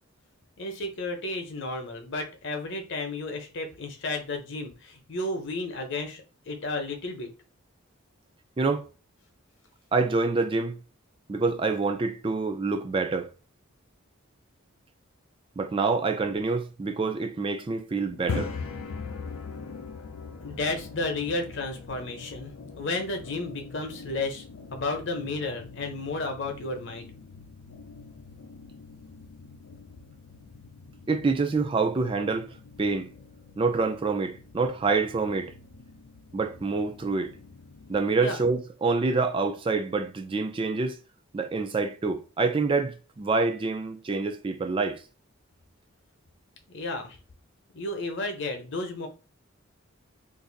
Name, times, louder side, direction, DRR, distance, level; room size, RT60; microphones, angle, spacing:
voice 1, 0.6-7.3 20.4-24.4 24.7-27.1 38.2-38.4 46.7-47.2 47.7-49.1, left 2 dB, 55° left, 0.8 m, -32 dB
voice 2, 8.6-8.9 9.9-10.8 11.3-13.3 15.6-18.5 31.1-33.1 33.6-35.5 36.3-37.3 37.9-41.0 41.3-45.0, right 4 dB, 25° right, 0.3 m, -27 dB
sound 1, 18.1-38.0, left 4 dB, 85° left, 0.5 m, -42 dB
2.6 x 2.5 x 3.8 m
head